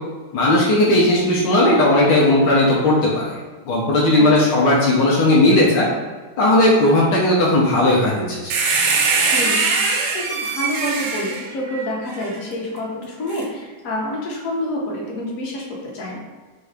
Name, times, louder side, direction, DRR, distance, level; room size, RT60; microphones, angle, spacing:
voice 1, 0.3-3.4 3.7-5.9 6.4-8.5, left 1 dB, 70° left, -5 dB, 1.4 m, -16 dB
voice 2, 4.1-4.6 9.3-16.2, left 1 dB, 55° left, -2 dB, 1.1 m, -28 dB
sound 1, 8.5-12.3 13.3-13.4, right 4 dB, 85° right, 1.5 m, -21 dB
4.7 x 2.7 x 3.3 m, 1.4 s
omnidirectional pair, 2.1 m